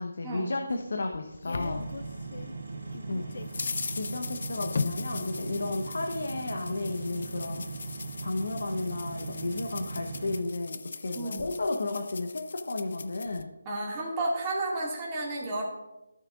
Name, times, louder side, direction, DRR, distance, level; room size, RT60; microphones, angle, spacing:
voice 1, 0.0-1.9 3.1-3.3 4.0-7.6 8.2-13.5, left 2 dB, 70° left, 3 dB, 0.9 m, -33 dB
sound 1, 0.7-2.5 2.9-13.4, left 4 dB, 50° left, 0.5 m, -39 dB
sound 2, 1.6-10.4, right 3 dB, 65° right, 2.4 m, -39 dB
voice 2, 13.7-15.6, right 2 dB, 15° right, -5 dB, 2.1 m, -32 dB
15.0 x 6.5 x 2.5 m, 0.99 s
figure-of-eight pair, 165°, 0 cm